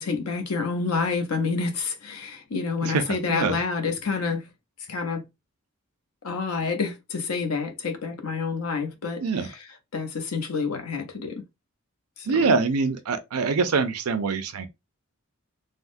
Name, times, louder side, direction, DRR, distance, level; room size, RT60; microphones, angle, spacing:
voice 1, 0.0-4.4 4.9-5.2 6.2-9.2 9.9-11.4 12.2-12.3, left 4 dB, 80° left, 0.6 m, -28 dB
voice 2, 2.8-3.6 9.2-9.5 12.3-14.7, right 4 dB, 80° right, 0.5 m, -24 dB
3.4 x 2.0 x 2.5 m
head